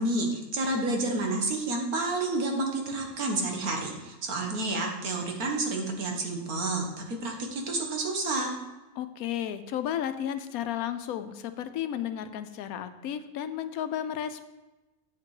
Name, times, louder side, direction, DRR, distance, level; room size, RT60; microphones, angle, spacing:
voice 1, 0.0-8.5, right 2 dB, 85° right, 2 dB, 1.8 m, -30 dB
voice 2, 9.0-14.4, left 10 dB, 80° left, 10 dB, 1.1 m, -33 dB
7.9 x 6.7 x 4.8 m, 1.1 s
omnidirectional pair, 1.5 m